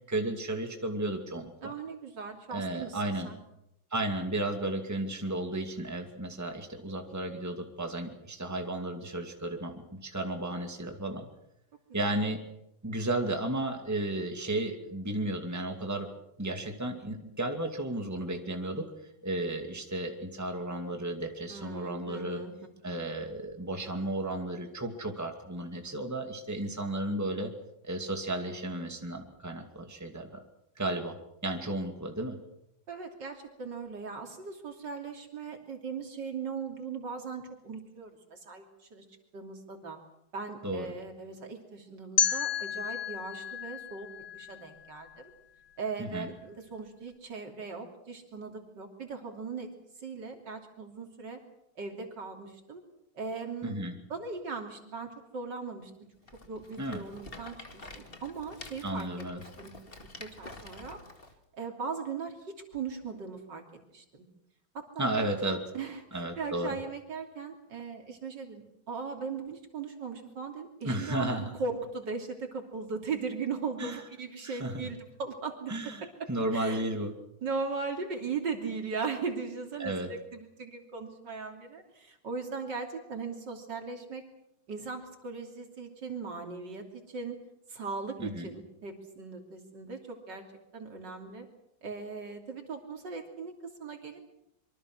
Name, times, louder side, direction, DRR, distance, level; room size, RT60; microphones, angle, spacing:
voice 1, 0.1-1.7 2.5-3.3 3.9-11.3 11.9-12.4 12.8-16.1 16.4-18.9 19.2-22.4 22.8-27.5 27.8-30.4 30.8-31.2 31.4-32.4 40.6-40.9 46.0-46.3 53.6-53.9 56.8-57.0 58.8-59.4 65.0-65.6 66.1-66.8 70.8-71.5 73.8-74.0 74.4-74.9 75.7-77.1 79.8-80.1 88.2-88.5, right 1 dB, 10° right, 4 dB, 2.3 m, -33 dB
voice 2, 1.6-3.4 12.0-12.2 21.5-22.5 32.9-39.1 39.3-40.0 40.3-44.1 44.3-45.1 45.8-49.7 50.0-51.4 51.8-52.8 53.2-55.9 56.5-59.1 59.4-59.7 60.2-61.0 61.5-63.6 63.9-64.3 64.7-75.7 76.0-76.9 77.4-84.2 84.7-87.4 87.7-90.4 90.7-91.5 91.8-94.2, right 5 dB, 65° right, 3 dB, 3.6 m, -39 dB
sound 1, 42.2-45.1, left 8 dB, 70° left, 1.9 m, -32 dB
Rattle, 56.2-61.3, left 2 dB, 30° left, 2.2 m, -48 dB
26.0 x 24.0 x 6.3 m, 0.80 s
omnidirectional pair, 2.1 m